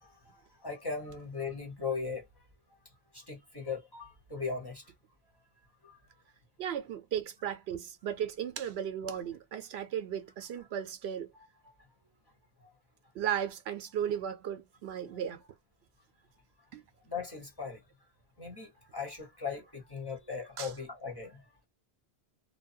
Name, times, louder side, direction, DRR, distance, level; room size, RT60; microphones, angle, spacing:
voice 1, 0.0-2.2 3.1-4.9 5.8-5.9 11.3-11.5 12.6-12.7 15.1-15.2 17.1-17.8 18.4-21.4, left 5 dB, 20° left, 1.2 m, -39 dB
voice 2, 6.6-11.3 13.1-15.4 16.7-16.8 20.6-20.7, right 9 dB, 75° right, 0.8 m, -35 dB
2.7 x 2.3 x 2.6 m
omnidirectional pair, 1.1 m